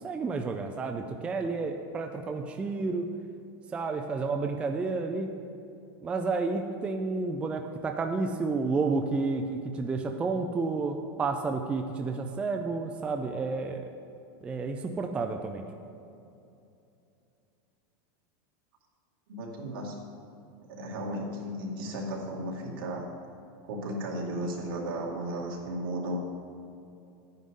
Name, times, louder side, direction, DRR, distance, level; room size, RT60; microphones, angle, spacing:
voice 1, 0.0-3.1 3.7-5.3 6.0-13.8 14.4-15.6, right 4 dB, 10° right, 4 dB, 0.3 m, -31 dB
voice 2, 19.3-20.0 20.7-23.0 23.6-26.2, right 1 dB, 75° right, -2 dB, 2.2 m, -34 dB
11.5 x 9.3 x 3.7 m, 2.7 s
supercardioid pair, 165°, 12 cm